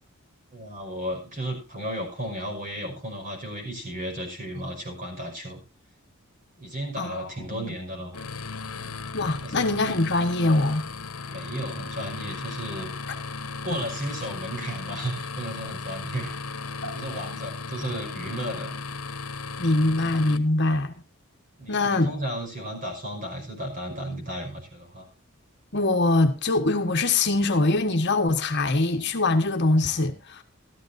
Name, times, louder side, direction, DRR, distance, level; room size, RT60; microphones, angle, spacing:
voice 1, 0.5-5.6 6.6-8.3 8.7-8.9 9.4-9.7 11.2-12.9 13.6-16.4 16.9-18.7 21.6-25.1, right 1 dB, 40° right, 5.4 m, -34 dB
voice 2, 7.0-7.6 9.1-10.9 16.8-16.9 19.6-20.9 21.7-22.1 25.7-30.4, left 2 dB, 55° left, 1.4 m, -23 dB
sound 1, 8.1-20.4, left 4 dB, 80° left, 1.1 m, -36 dB
14.5 x 13.5 x 2.7 m
head